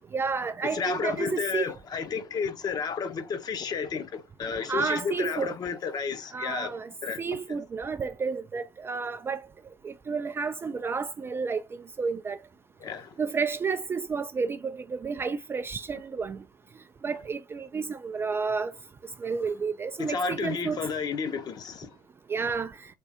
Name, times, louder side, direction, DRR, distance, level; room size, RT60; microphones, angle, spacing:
voice 1, 0.1-1.7 4.7-5.5 6.3-6.9 7.2-9.4 9.8-11.6 12.0-12.4 13.2-16.4 17.0-18.7 19.2-20.9 22.3-22.7, right 5 dB, 20° right, 0.3 m, -31 dB
voice 2, 0.6-7.2 12.8-13.1 20.0-21.9, left 5 dB, 35° left, 0.8 m, -32 dB
3.6 x 3.3 x 2.7 m
hypercardioid pair, 75°, 11 cm